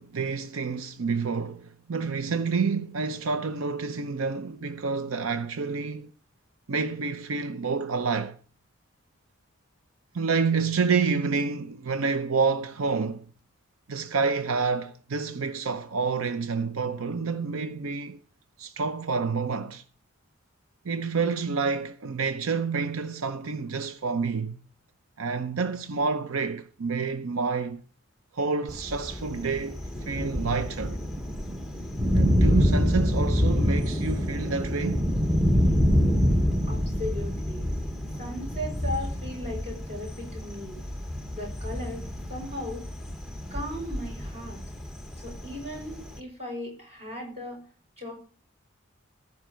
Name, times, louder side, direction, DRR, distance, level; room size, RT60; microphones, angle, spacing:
voice 1, 0.0-6.1 6.7-8.4 10.1-13.2 13.9-18.2 18.6-19.8 20.8-24.5 25.2-27.8 28.3-31.0 32.1-35.0, right 4 dB, 85° right, 0.7 m, -28 dB
Thunder, 28.7-46.2, equal, ahead, 0.9 m, -27 dB
voice 2, 36.7-37.7 38.2-40.8 41.3-42.8 43.5-44.6 45.2-47.6 48.0-48.1, left 1 dB, 30° right, 5.6 m, -37 dB
14.5 x 5.8 x 6.2 m
head